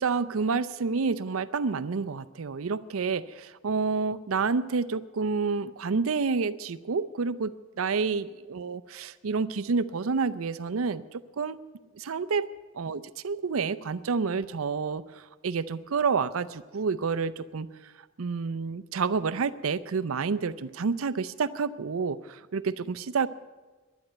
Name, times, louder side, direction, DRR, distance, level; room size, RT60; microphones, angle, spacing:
voice 1, 0.0-11.6 12.0-12.5 12.7-17.9 18.2-23.3, right 5 dB, 90° right, 13 dB, 0.5 m, -29 dB
12.0 x 10.5 x 9.2 m, 1.3 s
head